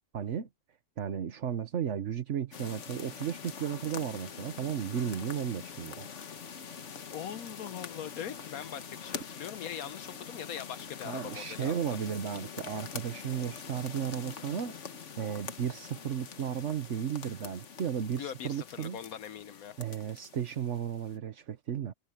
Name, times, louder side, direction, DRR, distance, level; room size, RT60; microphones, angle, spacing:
voice 1, 0.1-0.5 1.0-6.1 11.0-14.8 15.2-19.0 19.8-21.9, right 8 dB, 55° right, 1.3 m, -34 dB
sound 1, 2.5-21.2, left 6 dB, 50° left, 1.4 m, -44 dB
voice 2, 7.1-11.7 18.2-19.7, left 9 dB, 70° left, 1.2 m, -41 dB
omnidirectional pair, 1.7 m